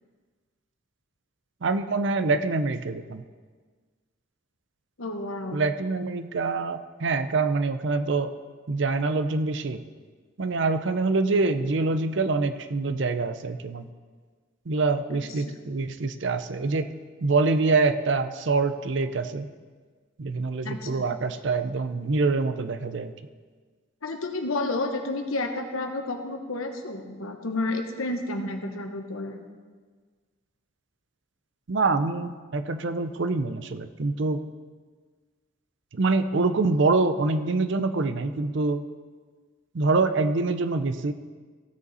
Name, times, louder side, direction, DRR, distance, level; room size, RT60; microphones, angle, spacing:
voice 1, 1.6-3.2 5.5-8.3 8.7-9.8 10.4-13.9 14.7-16.9 17.2-19.5 20.2-23.1 31.7-34.4 35.9-38.8 39.7-41.1, right 3 dB, 60° right, 10 dB, 0.5 m, -25 dB
voice 2, 5.0-5.6 15.1-15.2 20.6-21.1 24.0-29.5, left 2 dB, 80° left, 4 dB, 1.2 m, -31 dB
15.5 x 6.8 x 4.2 m, 1.5 s
head